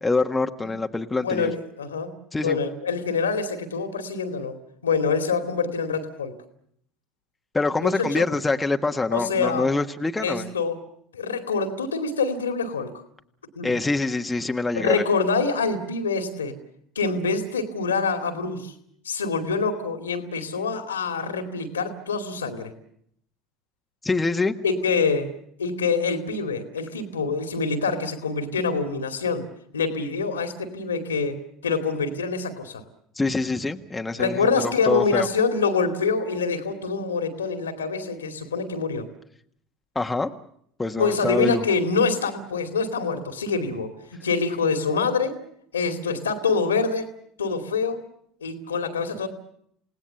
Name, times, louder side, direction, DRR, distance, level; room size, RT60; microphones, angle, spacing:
voice 1, 0.0-1.5 2.3-2.6 7.5-10.5 13.6-15.0 24.0-24.5 33.2-35.3 39.9-40.3 40.8-41.6, left 3 dB, 15° left, 5 dB, 1.4 m, -25 dB
voice 2, 1.2-2.1 2.4-4.6 4.8-6.4 7.8-8.2 9.1-9.7 10.2-10.8 11.1-12.9 13.6-13.7 14.7-16.6 17.0-18.7 19.0-22.7 24.6-25.3 25.6-29.5 29.7-32.8 34.2-39.1 41.0-43.9 44.2-45.4 45.7-47.1 47.4-48.1 48.4-49.3, left 4 dB, 80° left, 6 dB, 2.4 m, -25 dB
28.5 x 18.5 x 6.9 m, 0.69 s
figure-of-eight pair, 70°, 0 cm